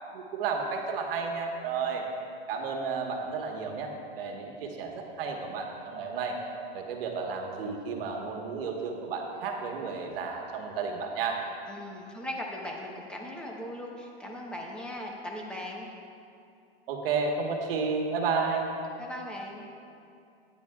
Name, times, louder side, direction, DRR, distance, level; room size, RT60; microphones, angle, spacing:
voice 1, 0.1-2.0 2.5-6.4 6.7-11.4 16.9-18.7, right 5 dB, 60° right, 1 dB, 1.4 m, -32 dB
voice 2, 11.7-15.9 19.0-19.7, left 1 dB, 5° left, -1 dB, 0.9 m, -39 dB
12.5 x 9.8 x 2.4 m, 2.5 s
supercardioid pair, 145°, 32 cm